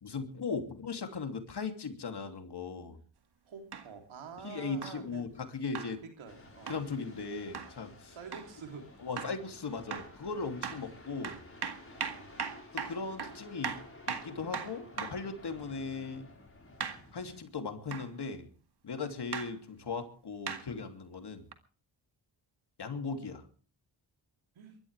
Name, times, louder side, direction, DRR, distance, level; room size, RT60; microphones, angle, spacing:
voice 1, 0.0-3.0 4.4-6.0 6.7-8.2 9.0-11.4 12.7-13.8 14.1-16.3 17.1-18.5 18.8-21.4 22.8-23.4, left 4 dB, 55° left, 6 dB, 3.0 m, -38 dB
voice 2, 3.5-5.2 6.2-6.8 8.1-9.0 11.9-12.5 15.5-15.9 24.6-24.8, right 5 dB, 80° right, 4 dB, 3.5 m, -48 dB
sound 1, 3.7-3.9 4.8-5.0 5.7-5.9 6.7-6.9 7.5-7.7 8.3-8.5 9.2-9.4 9.9-10.2 10.6-10.8 11.2-15.3 16.8-17.0 17.9-18.1 19.3-19.5 20.5-20.7 21.5-21.6, right 6 dB, 55° right, 2.0 m, -38 dB
sound 2, 6.3-17.4, left 2 dB, 30° left, 5.1 m, -53 dB
24.0 x 13.0 x 3.5 m, 0.39 s
cardioid pair, 50°, 47 cm